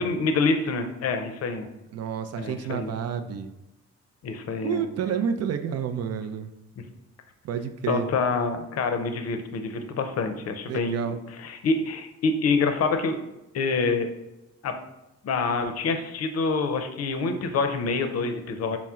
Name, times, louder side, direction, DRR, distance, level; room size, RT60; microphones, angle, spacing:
voice 1, 0.0-1.7 2.4-2.9 4.2-4.8 7.9-13.2 13.5-14.1 14.6-14.8 15.2-18.8, left 4 dB, 55° left, 6 dB, 0.6 m, -26 dB
voice 2, 1.9-3.5 4.6-6.5 7.4-8.1 10.7-11.2, right 7 dB, 55° right, 8 dB, 0.4 m, -29 dB
4.3 x 2.1 x 3.6 m, 0.93 s
cardioid pair, 90°, 30 cm